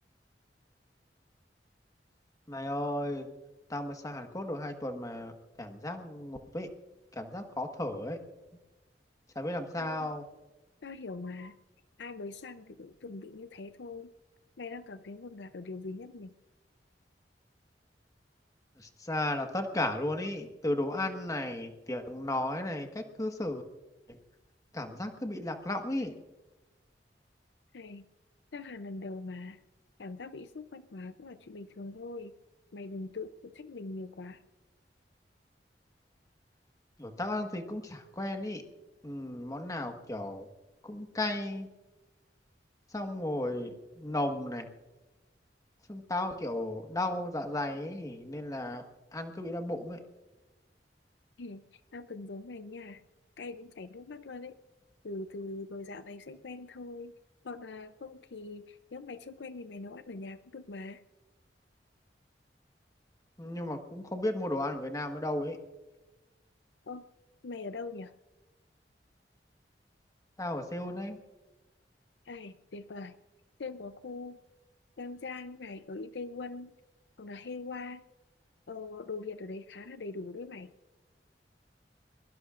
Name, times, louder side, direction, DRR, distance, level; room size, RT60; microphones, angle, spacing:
voice 1, 2.5-3.3 3.7-5.3 5.6-6.7 7.1-8.2 9.3-10.2 18.8-23.6 24.1-24.2 24.7-26.1 37.0-38.6 39.0-40.5 40.8-41.7 42.9-44.7 45.9-50.0 63.4-65.6 70.4-71.2, left 1 dB, 20° left, 4 dB, 1.5 m, -34 dB
voice 2, 9.8-10.1 10.8-11.6 12.0-14.1 14.6-16.3 27.7-28.1 28.5-29.6 30.0-32.4 32.7-34.4 51.4-53.0 53.4-54.6 55.0-57.2 57.4-61.0 66.8-67.1 67.4-68.1 72.2-73.2 73.6-74.4 75.0-76.8 77.2-78.0 78.7-80.7, left 3 dB, 75° left, 11 dB, 0.6 m, -42 dB
22.5 x 22.5 x 2.5 m, 1.1 s
head